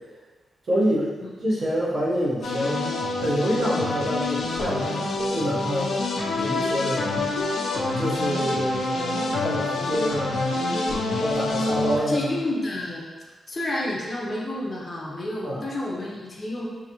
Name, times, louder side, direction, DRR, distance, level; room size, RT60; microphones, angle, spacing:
voice 1, 0.6-2.9 3.2-6.0 6.4-7.1 8.0-10.4 11.2-12.4 15.4-15.6, equal, 40° right, -6 dB, 0.9 m, -27 dB
sound 1, 2.4-12.0, left 2 dB, 75° left, 0.4 m, -26 dB
voice 2, 12.1-13.0 13.5-16.7, left 1 dB, 25° left, -4 dB, 0.6 m, -30 dB
3.9 x 2.7 x 2.9 m, 1.4 s
wide cardioid pair, 155°, 0 cm